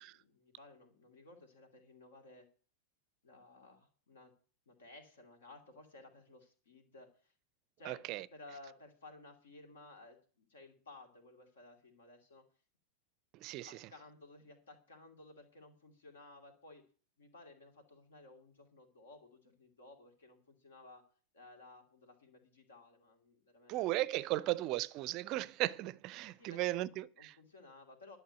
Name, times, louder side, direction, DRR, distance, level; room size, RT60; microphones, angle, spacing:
voice 1, 0.0-2.5 3.2-4.3 4.7-7.3 7.8-12.4 13.7-16.9 17.2-21.1 21.3-23.8 24.4-24.5 26.4-26.9 27.2-28.2, left 2 dB, 65° left, 2.6 m, -57 dB
voice 2, 7.9-8.3 13.3-13.8 23.7-27.1, right 17 dB, 40° right, 0.5 m, -36 dB
11.5 x 6.1 x 9.0 m
figure-of-eight pair, 90°, 0 cm